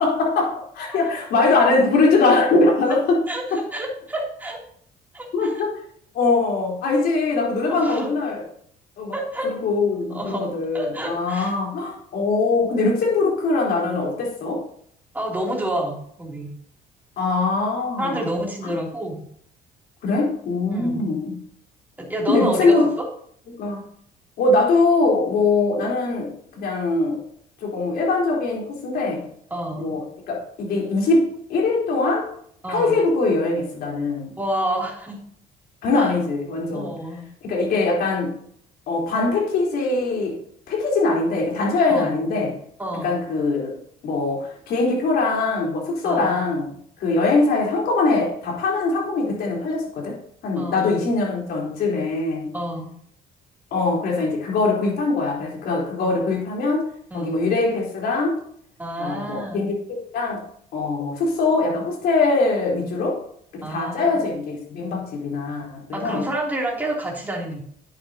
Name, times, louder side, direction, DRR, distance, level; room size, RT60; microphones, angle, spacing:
voice 1, 0.0-3.3 3.5-3.6 5.3-5.7 6.1-8.4 9.0-9.1 9.4-14.6 17.2-18.3 20.0-21.4 22.3-22.8 23.6-23.8 24.4-27.2 27.6-29.3 29.8-32.3 32.7-34.3 35.8-36.9 37.4-38.4 38.9-40.4 40.7-42.6 43.0-43.7 44.0-46.7 47.0-50.2 50.4-52.5 53.7-56.9 57.1-58.4 59.0-60.4 60.7-63.2 63.5-66.3, left 3 dB, 65° left, -2 dB, 3.9 m, -22 dB
voice 2, 3.3-4.6 5.1-5.5 7.7-8.1 9.1-9.5 10.1-11.5 15.1-16.5 18.0-19.2 20.7-21.1 22.0-23.1 29.5-30.0 32.6-33.0 34.4-35.2 36.0-36.1 36.7-37.2 41.9-42.1 42.8-43.1 46.0-46.3 50.6-50.9 52.5-52.9 57.1-57.4 58.8-59.7 63.6-64.2 65.9-67.6, right 1 dB, 10° right, -2 dB, 3.0 m, -29 dB
10.5 x 9.1 x 2.9 m, 0.64 s
cardioid pair, 110°, 17 cm